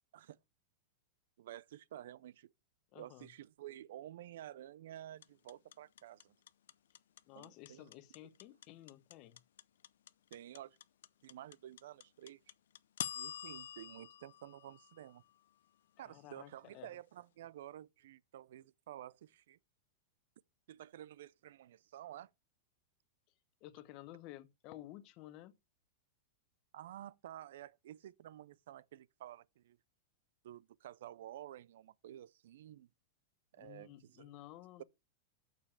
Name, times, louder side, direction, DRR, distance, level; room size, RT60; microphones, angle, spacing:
voice 1, 1.4-2.5 2.9-6.3 7.3-7.8 10.3-10.8 11.2-12.4 13.1-15.2 16.0-19.6 20.7-22.3 26.7-29.8 30.4-32.9 33.5-34.3, right 12 dB, 70° right, 0.4 m, -51 dB
voice 2, 2.9-3.3 7.3-9.4 16.0-16.9 23.6-25.5 33.6-34.8, left 14 dB, 40° left, 0.9 m, -53 dB
sound 1, 5.2-15.4, left 10 dB, 85° left, 0.5 m, -46 dB
6.6 x 5.6 x 6.9 m
supercardioid pair, 150°, 0 cm